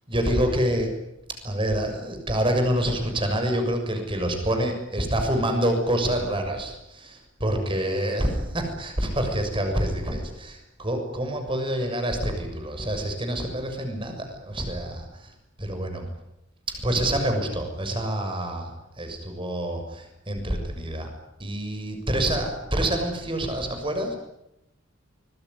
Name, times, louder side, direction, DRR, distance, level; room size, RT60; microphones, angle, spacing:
voice 1, 0.1-0.9 1.4-16.1 16.7-21.1 21.4-24.1, right 1 dB, 25° right, 5 dB, 6.7 m, -27 dB
25.0 x 22.0 x 9.9 m, 0.85 s
head